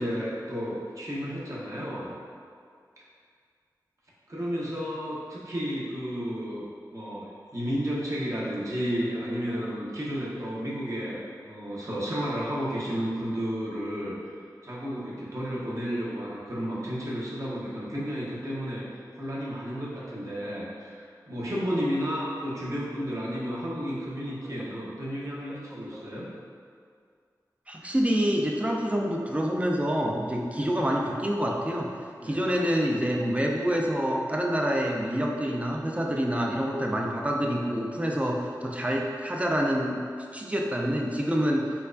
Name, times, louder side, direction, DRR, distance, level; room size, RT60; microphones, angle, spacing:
voice 1, 0.0-2.1 4.3-6.7 6.9-14.3 14.6-26.3 30.5-30.7 32.2-32.5, equal, 45° right, -7 dB, 0.9 m, -32 dB
voice 2, 27.7-31.9 32.2-40.0 40.3-41.7, equal, 20° right, 0 dB, 0.4 m, -27 dB
4.4 x 2.3 x 2.5 m, 2.2 s
cardioid pair, 45°, 7 cm